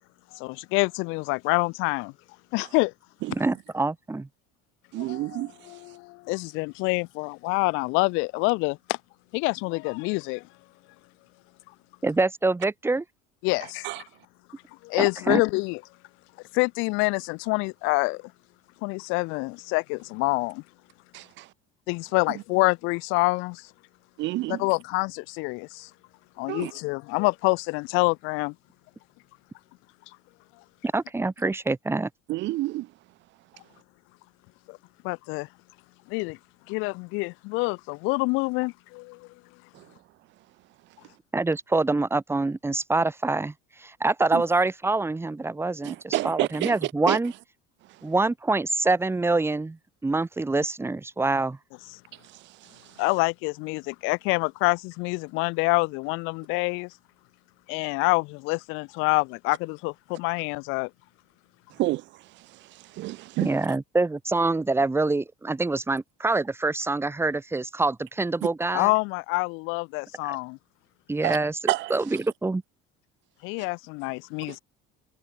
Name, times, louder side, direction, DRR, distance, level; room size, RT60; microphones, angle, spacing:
voice 1, 0.3-2.1 2.5-2.9 5.0-9.0 9.3-10.4 13.4-13.9 14.8-15.8 16.5-18.2 18.8-20.6 21.9-23.7 24.5-25.9 26.4-28.5 34.7-34.8 35.0-35.5 36.1-36.4 36.7-39.3 53.0-56.9 57.7-60.9 68.7-70.6 73.4-74.6, left 27 dB, 75° left, 1.5 m, -26 dB
voice 2, 3.3-4.3 12.0-13.0 15.0-15.4 30.8-32.1 41.3-43.5 43.8-47.3 48.0-51.6 63.4-68.9 70.2-70.4 71.1-72.6, right 3 dB, 10° right, 4.7 m, -25 dB
voice 3, 4.9-5.5 13.8-14.0 21.1-21.5 22.3-22.4 24.2-24.6 26.5-26.7 32.3-32.9 39.7-39.9 44.3-44.4 45.8-47.2 52.2-52.9 61.7-63.5 71.2-71.4 71.7-72.0 74.5-74.6, right 18 dB, 65° right, 5.0 m, -30 dB
cardioid pair, 130°, 20 cm